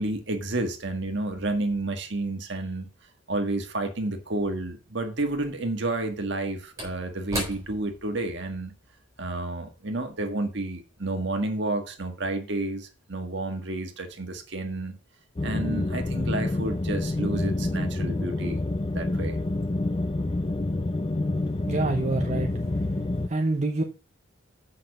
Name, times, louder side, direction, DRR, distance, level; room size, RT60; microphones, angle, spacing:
voice 1, 0.0-2.9 3.3-8.7 9.2-14.9 15.4-18.6 18.9-19.4, right 2 dB, 55° right, 1.6 m, -30 dB
Slam / Wood, 4.3-4.4 5.9-10.6 10.9-11.1, equal, 15° right, 3.7 m, -39 dB
sound 1, 15.4-23.3, left 2 dB, 25° left, 0.5 m, -28 dB
voice 2, 21.7-22.8 23.3-23.8, right 2 dB, 35° right, 0.8 m, -27 dB
6.9 x 5.6 x 6.6 m
head